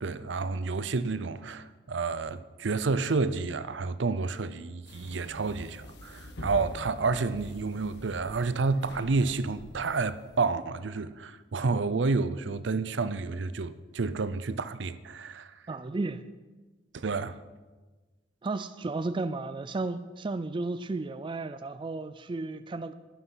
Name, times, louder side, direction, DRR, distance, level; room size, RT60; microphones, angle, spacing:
voice 1, 0.0-15.7 16.9-17.4, right 4 dB, 70° right, 0.6 m, -30 dB
sound 1, 4.9-10.4, left 1 dB, 60° left, 1.4 m, -45 dB
voice 2, 15.7-16.2 18.4-22.9, right 3 dB, 25° right, 0.4 m, -33 dB
11.5 x 10.5 x 5.7 m
head